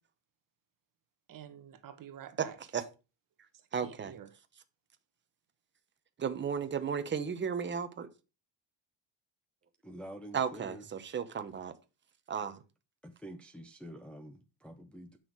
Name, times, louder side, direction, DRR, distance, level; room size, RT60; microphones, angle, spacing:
voice 1, 1.3-2.6 3.5-4.3, right 9 dB, 40° right, 1.2 m, -49 dB
voice 2, 3.7-4.1 6.2-8.1 10.3-11.7 12.3-12.6, right 7 dB, 25° right, 1.0 m, -34 dB
voice 3, 9.8-10.8 13.0-15.2, right 1 dB, ahead, 0.6 m, -47 dB
9.2 x 6.3 x 4.6 m
cardioid pair, 145°, 48 cm